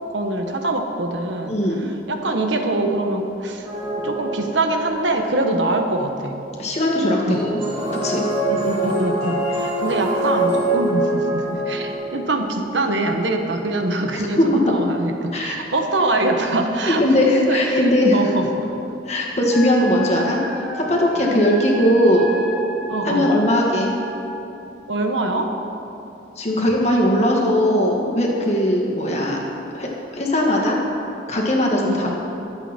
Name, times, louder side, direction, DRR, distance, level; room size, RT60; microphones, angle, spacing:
voice 1, 0.1-3.7 4.0-6.4 7.3-7.4 8.5-17.0 17.5-18.7 21.2-21.5 22.9-23.3 24.9-25.5 31.8-32.1, right 2 dB, 85° right, 4 dB, 1.4 m, -24 dB
voice 2, 1.5-1.8 6.6-7.4 7.9-8.2 14.4-14.6 15.3-15.5 16.9-18.3 19.1-22.3 23.0-23.9 26.4-29.4 29.7-30.8 31.3-32.1, left 1 dB, 35° left, -1 dB, 2.1 m, -19 dB
sound 1, 3.7-5.0 7.3-12.5, right 1 dB, 35° right, 3.1 m, -24 dB
Wind instrument woodwind instrument, 19.5-24.4, equal, 5° right, 1.3 m, -33 dB
24.0 x 8.1 x 4.5 m, 2.8 s
head